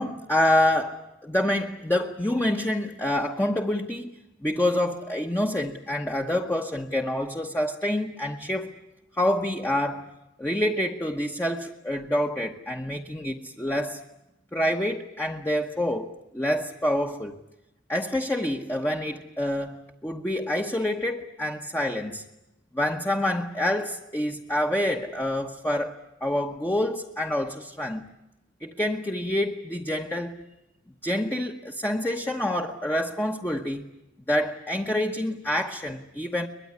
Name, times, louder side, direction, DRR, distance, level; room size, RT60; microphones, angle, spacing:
voice 1, 0.0-4.1 4.4-8.8 9.2-10.1 10.4-14.0 14.5-17.4 17.9-22.2 22.7-28.1 28.6-30.4 31.0-33.8 34.3-36.5, left 1 dB, 10° left, 2 dB, 1.1 m, -27 dB
23.0 x 21.5 x 9.7 m, 0.95 s
head